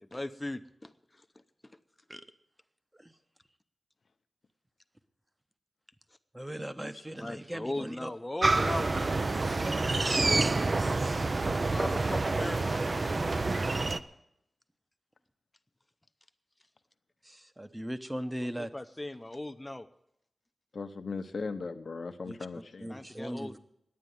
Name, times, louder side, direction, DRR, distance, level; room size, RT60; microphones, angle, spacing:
voice 1, 0.0-0.9 7.2-9.2 9.5-10.5 11.7-13.0 18.6-19.9 22.9-23.6, left 1 dB, 15° left, 8 dB, 0.7 m, -38 dB
voice 2, 6.3-8.1 17.2-18.7 22.3-22.4 22.8-23.6, equal, 15° right, 10 dB, 0.9 m, -38 dB
sound 1, 8.4-14.0, right 3 dB, 45° right, 0.6 m, -28 dB
voice 3, 20.7-22.9 23.2-23.3, left 4 dB, 65° left, 8 dB, 0.9 m, -38 dB
10.5 x 8.9 x 9.6 m, 0.79 s
cardioid pair, 70°, 0 cm